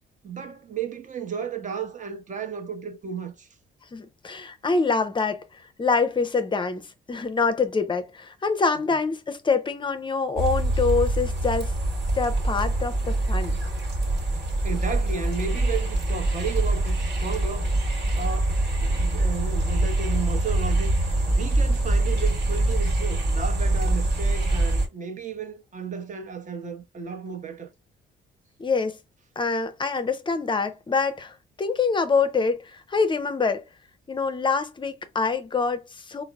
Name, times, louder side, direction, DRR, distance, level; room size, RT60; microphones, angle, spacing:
voice 1, 0.2-3.5 14.3-17.8 18.2-20.9 21.3-27.7, right 6 dB, 40° right, 0.7 m, -33 dB
voice 2, 3.9-11.7 12.1-13.6 28.6-29.0 29.4-33.7 34.1-36.2, left 4 dB, 25° left, 0.5 m, -25 dB
sound 1, 10.3-24.9, right 1 dB, 55° right, 1.3 m, -24 dB
3.7 x 2.0 x 2.2 m
cardioid pair, 90°, 20 cm